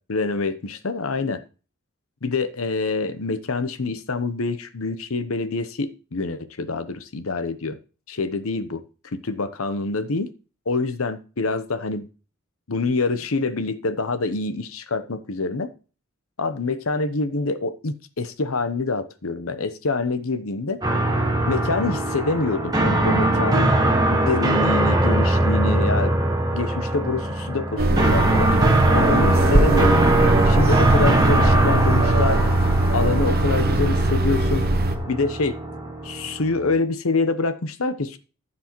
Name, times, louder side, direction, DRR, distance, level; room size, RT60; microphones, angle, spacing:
voice 1, 0.1-1.4 2.2-7.8 8.1-8.8 9.1-10.3 10.7-12.0 12.7-15.7 16.4-20.8 21.5-23.8 24.1-26.1 26.5-28.6 28.9-30.0 30.4-32.4 32.9-34.6 35.1-35.6 36.0-38.2, left 3 dB, 70° left, 0.9 m, -26 dB
sound 1, 20.8-36.7, right 1 dB, 20° right, 1.3 m, -21 dB
sound 2, 27.8-35.0, right 2 dB, 45° right, 1.0 m, -20 dB
14.5 x 6.1 x 3.1 m
head